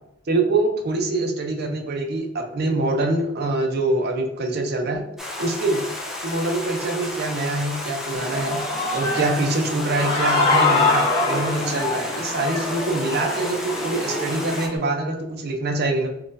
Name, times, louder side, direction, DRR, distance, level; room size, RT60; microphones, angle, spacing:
voice 1, 0.3-5.0 5.4-5.8 6.2-8.6 8.9-16.1, right 2 dB, 55° right, 3 dB, 0.6 m, -24 dB
Stream, 5.2-14.7, left 2 dB, ahead, 0.4 m, -33 dB
Human voice / Cheering, 8.2-14.8, left 3 dB, 30° left, 0.7 m, -24 dB
3.7 x 2.4 x 2.6 m, 0.80 s
head